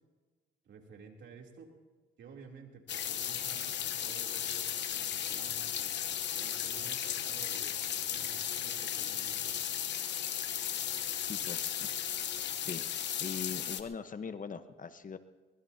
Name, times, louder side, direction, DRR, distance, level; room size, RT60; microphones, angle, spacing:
voice 1, 0.6-1.7 2.2-6.1 6.4-9.7, right 5 dB, 70° right, 1 dB, 3.3 m, -53 dB
sound 1, 2.9-13.8, left 10 dB, 65° left, 1.1 m, -35 dB
voice 2, 11.3-11.9 12.6-15.2, left 6 dB, 40° left, 10 dB, 1.2 m, -41 dB
23.0 x 20.5 x 2.9 m, 1.3 s
cardioid pair, 90°, 20 cm